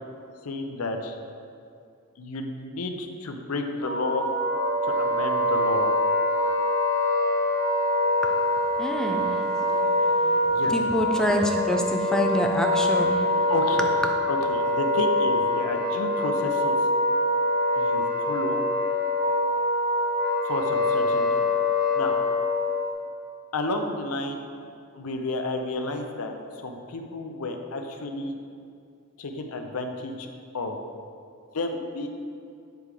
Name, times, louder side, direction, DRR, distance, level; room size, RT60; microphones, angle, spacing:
voice 1, 0.4-1.2 2.2-4.3 4.8-5.9 10.5-10.7 13.5-13.9 14.3-16.8 17.8-18.6 20.4-21.5 21.9-22.1 23.5-24.4 24.9-26.3 26.6-28.4 29.2-30.3 30.5-30.8 31.5-32.1, left 2 dB, 75° left, 4 dB, 0.6 m, -31 dB
Wind instrument woodwind instrument, 3.8-22.9, left 1 dB, 55° right, 1.0 m, -24 dB
voice 2, 8.8-13.5, equal, 5° left, 2 dB, 0.4 m, -28 dB
7.8 x 3.4 x 4.7 m, 2.4 s
head